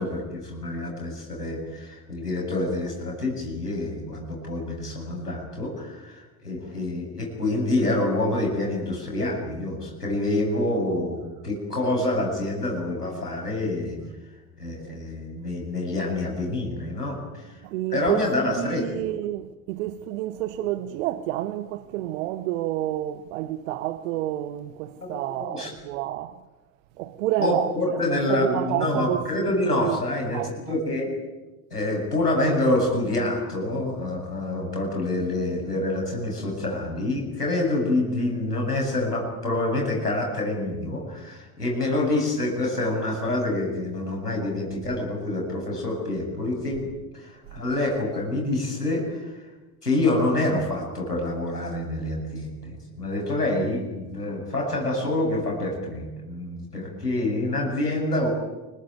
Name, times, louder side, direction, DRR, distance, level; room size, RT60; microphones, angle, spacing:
voice 1, 0.0-14.0 14.6-17.6 17.9-18.8 25.0-25.7 27.4-31.1 31.7-49.4 49.8-58.3, left 2 dB, 85° left, 7.9 m, -27 dB
voice 2, 17.6-18.2 18.6-26.4 27.0-30.0 30.3-30.7, right 14 dB, 60° right, 1.2 m, -29 dB
29.0 x 21.5 x 9.3 m
figure-of-eight pair, 65°, 45 cm